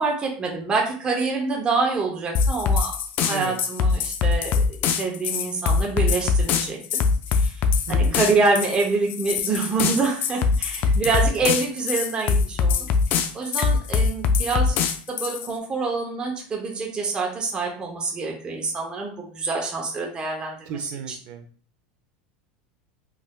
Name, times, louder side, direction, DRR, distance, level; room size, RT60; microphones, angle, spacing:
voice 1, 0.0-2.9 3.2-7.0 7.3-7.6 7.9-12.9 13.3-14.8 15.1-20.9, right 3 dB, 20° right, -1 dB, 0.7 m, -26 dB
sound 1, 2.3-15.5, left 5 dB, 40° left, 0.3 m, -22 dB
voice 2, 7.9-8.2 10.9-11.0 20.7-21.4, right 6 dB, 55° right, 7 dB, 0.6 m, -34 dB
sound 2, 10.9-11.5 11.8-11.9 12.9-13.1 13.5-14.1 14.7-15.2, left 4 dB, 65° left, 1.0 m, -41 dB
3.5 x 2.5 x 2.3 m, 0.43 s
supercardioid pair, 140°, 5 cm